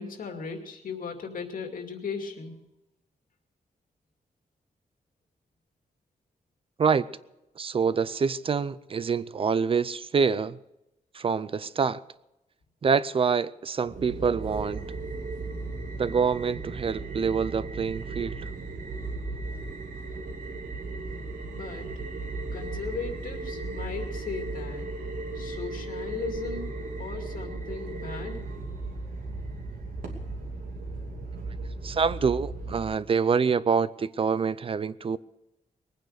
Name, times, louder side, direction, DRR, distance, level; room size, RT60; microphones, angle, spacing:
voice 1, 0.0-2.6 21.5-21.9 22.5-24.9 25.3-26.7 27.0-28.5, left 5 dB, 80° left, 2.5 m, -37 dB
voice 2, 7.6-10.6 11.1-12.0 12.8-14.8 16.0-18.4 31.8-35.2, right 6 dB, 40° right, 0.5 m, -26 dB
sound 1, 13.8-32.8, right 3 dB, 85° right, 2.7 m, -36 dB
20.5 x 9.6 x 6.5 m
wide cardioid pair, 145°, 14 cm